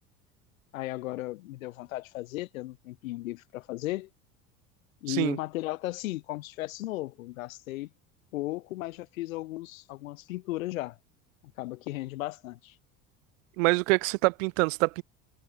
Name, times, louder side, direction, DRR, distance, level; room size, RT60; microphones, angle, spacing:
voice 1, 0.7-4.1 5.0-7.9 8.3-11.0 11.6-12.8, left 18 dB, 70° left, 2.6 m, -35 dB
voice 2, 13.6-15.0, right 26 dB, 60° right, 1.9 m, -25 dB
figure-of-eight pair, 70°, 43 cm